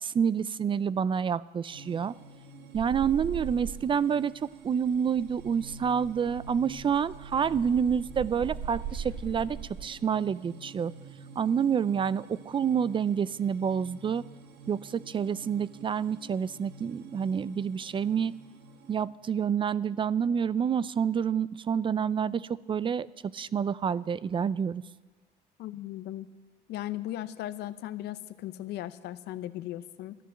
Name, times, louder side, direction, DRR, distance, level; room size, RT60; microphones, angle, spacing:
voice 1, 0.0-2.1 2.7-10.9 11.4-14.3 14.7-18.3 18.9-24.8, right 7 dB, 30° right, 19 dB, 0.4 m, -28 dB
sound 1, 1.7-19.0, right 2 dB, 85° right, 1.5 m, -49 dB
sound 2, 2.7-4.2 4.4-9.9 11.6-12.0, right 8 dB, 60° right, 4.0 m, -40 dB
voice 2, 25.6-26.3 26.7-30.2, left 13 dB, 80° left, 14 dB, 0.7 m, -37 dB
13.0 x 10.0 x 7.7 m, 1.3 s
cardioid pair, 110°, 17 cm